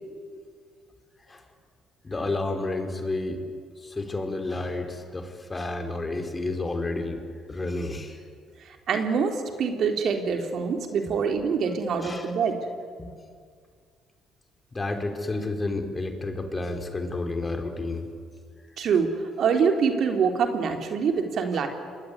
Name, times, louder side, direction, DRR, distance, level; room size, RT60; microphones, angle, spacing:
voice 1, 2.0-3.4 3.8-7.2 7.5-8.3 12.0-12.3 13.0-13.1 14.7-18.1 21.5-21.7, left 2 dB, 25° left, 5 dB, 4.6 m, -31 dB
voice 2, 8.6-12.7 18.8-21.7, right 6 dB, 60° right, 5 dB, 3.6 m, -25 dB
27.5 x 21.5 x 9.7 m, 2.1 s
supercardioid pair, 70°, 0 cm